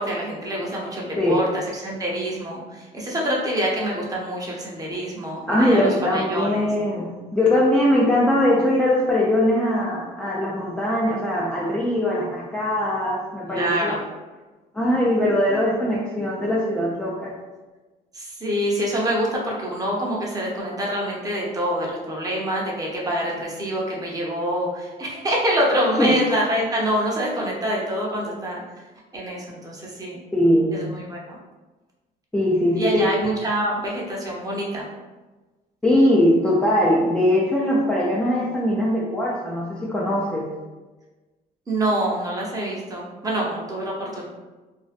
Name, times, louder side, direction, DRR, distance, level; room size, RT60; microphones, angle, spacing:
voice 1, 0.0-1.4 1.7-6.7 13.5-14.0 18.1-28.6 29.1-30.2 30.7-31.4 32.8-34.8 41.7-44.2, equal, 20° right, -3 dB, 0.7 m, -26 dB
voice 2, 5.5-13.9 14.7-17.3 26.0-26.2 30.3-30.8 32.3-33.0 35.8-40.5, left 1 dB, 5° left, -6 dB, 0.3 m, -21 dB
2.5 x 2.1 x 2.4 m, 1.2 s
cardioid pair, 110°, 17 cm